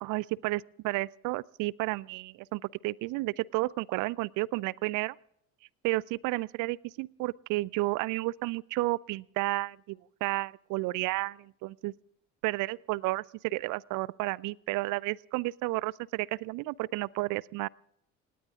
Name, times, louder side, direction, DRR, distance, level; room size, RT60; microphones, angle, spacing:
voice 1, 0.0-5.2 5.8-11.9 12.4-17.7, right 21 dB, 55° right, 0.5 m, -32 dB
29.0 x 18.5 x 2.5 m
figure-of-eight pair, 55°, 39 cm